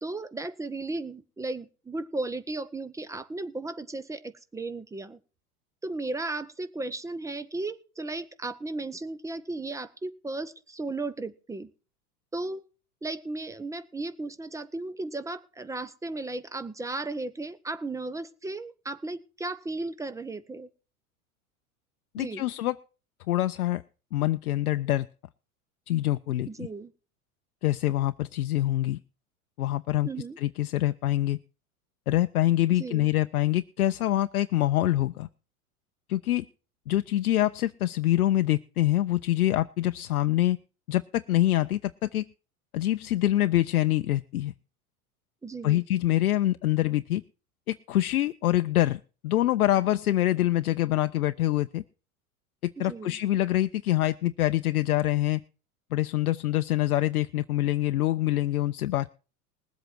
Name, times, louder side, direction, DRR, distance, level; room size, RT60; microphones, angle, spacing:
voice 1, 0.0-5.2 5.8-11.7 12.3-12.6 13.0-20.7 22.2-22.5 26.5-26.9 30.0-30.4 32.8-33.1 45.4-45.8 52.8-53.2, right 2 dB, 5° right, 13 dB, 0.8 m, -35 dB
voice 2, 22.1-22.8 23.3-23.8 24.1-25.1 25.9-26.7 27.6-29.0 29.6-30.1 30.4-31.4 32.1-35.3 36.1-36.4 36.9-40.6 40.9-42.2 42.7-44.5 45.6-47.2 47.7-51.8 52.6-55.4 55.9-59.1, left 14 dB, 75° left, 10 dB, 0.6 m, -25 dB
20.0 x 7.9 x 4.5 m, 0.35 s
figure-of-eight pair, 85°, 44 cm